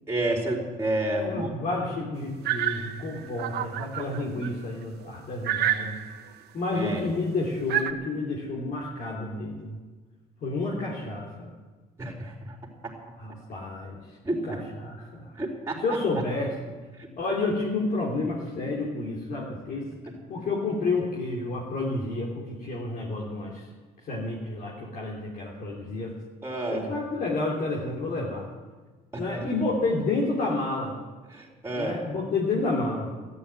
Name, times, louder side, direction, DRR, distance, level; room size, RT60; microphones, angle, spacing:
voice 1, 0.1-1.5 6.7-7.1 12.0-12.6 14.2-14.6 15.4-15.8 26.4-26.9 29.1-29.5 31.3-32.0, right 1 dB, 15° right, 0 dB, 4.2 m, -30 dB
voice 2, 1.1-6.0 6.5-9.8 10.4-11.5 13.2-14.2 14.4-15.3 15.8-16.7 17.2-19.9 20.3-23.7 24.0-26.1 26.7-28.5 29.2-31.0 31.7-33.1, left 3 dB, 55° left, -3 dB, 3.2 m, -30 dB
sound 1, 2.5-4.5 5.0-5.1 5.4-6.4 7.7-7.9, right 11 dB, 70° right, 1.2 m, -29 dB
14.0 x 11.0 x 9.1 m, 1.3 s
cardioid pair, 110°, 17 cm